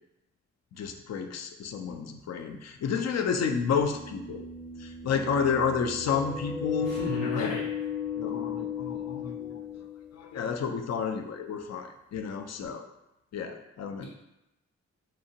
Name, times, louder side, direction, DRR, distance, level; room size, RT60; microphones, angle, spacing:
voice 1, 0.7-4.4 4.8-6.9 7.3-7.5 8.1-9.9 10.1-12.8 13.3-14.0, left 6 dB, 55° left, 5 dB, 0.4 m, -31 dB
sound 1, 1.9-2.0 3.5-10.4, left 6 dB, 5° left, 0.6 m, -36 dB
voice 2, 6.8-7.6 14.0-14.1, equal, 85° left, -5 dB, 0.8 m, -34 dB
2.8 x 2.1 x 2.7 m, 0.91 s
supercardioid pair, 40°, 33 cm